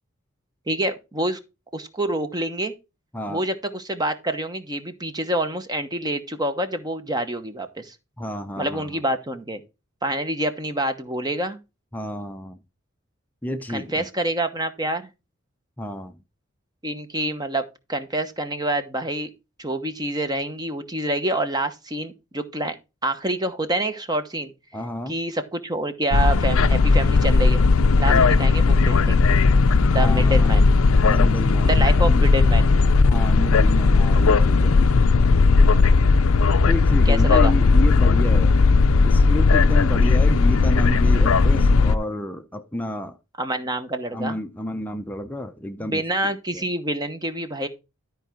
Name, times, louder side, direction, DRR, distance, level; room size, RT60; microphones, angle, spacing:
voice 1, 0.7-1.4 1.7-2.7 3.3-7.9 8.6-9.6 10.0-11.6 13.7-15.1 16.8-19.3 19.6-22.8 23.0-24.5 25.1-27.6 28.0-29.2 29.9-30.7 31.6-32.7 37.1-37.5 43.4-44.4 45.8-47.7, right 1 dB, 20° right, 0.9 m, -27 dB
voice 2, 3.1-3.5 8.2-9.0 11.9-12.6 13.4-14.1 15.8-16.2 24.7-25.2 28.1-28.4 30.0-30.6 31.0-32.3 33.0-34.8 36.7-38.6 39.0-43.2 44.1-46.6, left 1 dB, 10° left, 0.6 m, -30 dB
sound 1, 26.1-42.0, left 4 dB, 75° left, 0.5 m, -16 dB
12.5 x 4.7 x 4.5 m
head